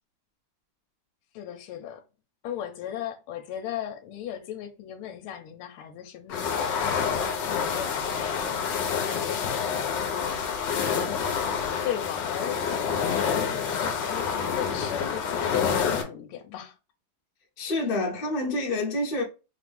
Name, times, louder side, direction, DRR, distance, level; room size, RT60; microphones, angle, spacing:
voice 1, 1.3-2.0 2.4-10.6 11.0-11.6 11.8-16.8, left 10 dB, 85° left, 1.5 m, -37 dB
sound 1, 6.3-16.0, left 6 dB, 65° left, 1.3 m, -28 dB
voice 2, 17.6-19.2, left 2 dB, 35° left, 0.9 m, -27 dB
4.5 x 2.5 x 3.5 m
omnidirectional pair, 2.4 m